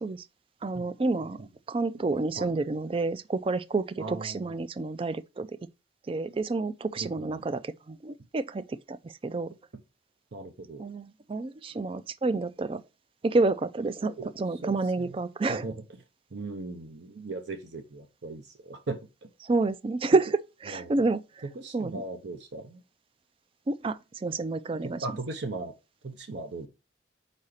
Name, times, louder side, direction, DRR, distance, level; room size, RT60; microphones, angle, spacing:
voice 1, 0.6-1.4 1.7-5.5 6.1-9.0 9.2-9.5 10.8-12.8 13.2-15.6 19.4-21.2 21.7-22.0 23.7-25.0, right 3 dB, 30° right, 0.3 m, -29 dB
voice 2, 4.0-4.6 7.0-7.4 10.3-10.9 14.0-15.2 15.5-15.8 16.3-19.3 20.7-21.0 21.4-22.8 24.8-25.7 26.0-26.7, right 3 dB, 65° right, 0.7 m, -38 dB
4.8 x 4.2 x 4.9 m
head